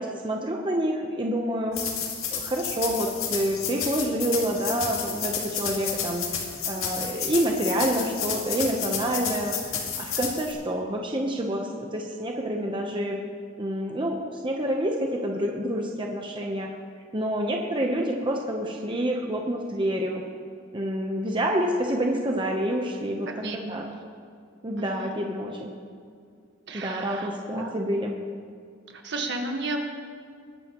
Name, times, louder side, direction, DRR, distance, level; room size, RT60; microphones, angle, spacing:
voice 1, 0.0-1.8 2.3-13.2 13.6-16.7 17.1-20.2 20.7-23.3 23.7-23.8 24.6-25.7 26.7-28.2, right 1 dB, 25° right, 1 dB, 0.9 m, -28 dB
sound 1, 1.7-10.5, left 7 dB, 85° left, 2.0 m, -31 dB
voice 2, 23.4-23.9 24.8-25.1 26.7-27.8 28.9-29.8, right 2 dB, 60° right, 3 dB, 1.5 m, -33 dB
21.0 x 11.0 x 3.1 m, 2.2 s
head